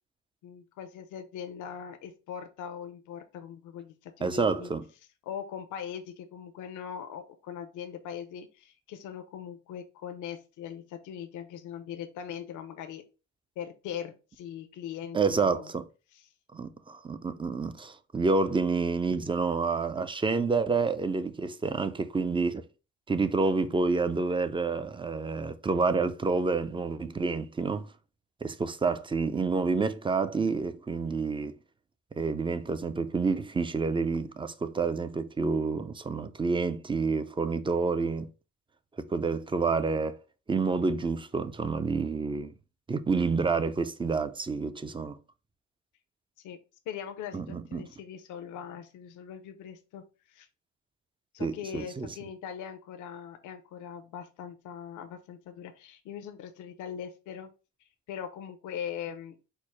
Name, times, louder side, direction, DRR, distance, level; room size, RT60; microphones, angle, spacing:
voice 1, 0.4-4.7 5.2-13.0 13.6-15.7 16.1-16.2 46.4-46.6 46.9-50.5 51.3-57.5 58.1-59.5, left 8 dB, 85° left, 0.6 m, -41 dB
voice 2, 4.2-4.8 15.1-15.8 16.5-22.6 23.1-27.9 28.4-31.5 32.2-38.3 39.0-40.2 40.5-42.5 42.9-45.2 47.3-47.9 51.4-52.1, right 4 dB, 15° right, 0.4 m, -28 dB
4.5 x 2.0 x 4.5 m
cardioid pair, 90°, 30 cm